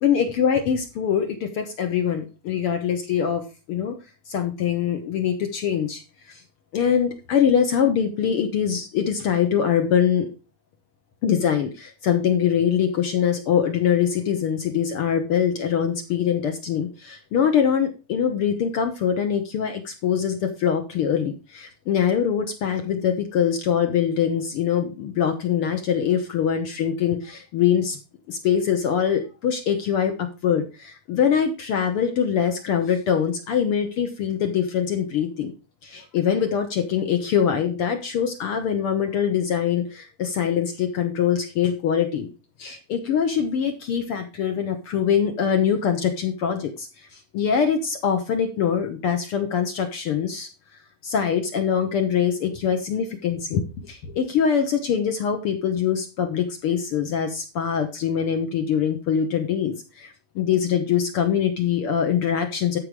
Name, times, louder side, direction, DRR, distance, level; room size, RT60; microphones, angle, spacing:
voice 1, 0.0-3.9 4.3-6.0 6.3-6.4 6.7-10.3 11.2-28.0 28.3-35.5 35.8-42.3 42.6-50.5 51.0-62.8, left 8 dB, 60° left, 6 dB, 1.6 m, -23 dB
13.0 x 5.5 x 4.7 m, 0.30 s
omnidirectional pair, 3.4 m